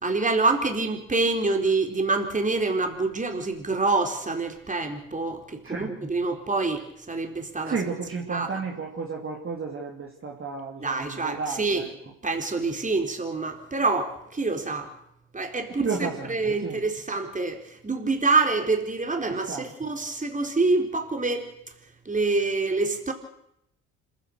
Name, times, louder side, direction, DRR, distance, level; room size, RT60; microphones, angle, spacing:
voice 1, 0.0-7.8 8.3-8.5 10.8-11.8 12.2-14.9 15.3-15.8 16.3-21.5 22.1-23.1, right 3 dB, 20° right, 4 dB, 4.1 m, -26 dB
voice 2, 7.6-11.9 15.7-16.8 19.3-19.7, right 5 dB, 35° right, 0 dB, 3.0 m, -32 dB
26.5 x 15.0 x 6.6 m, 0.78 s
hypercardioid pair, 60°, 35 cm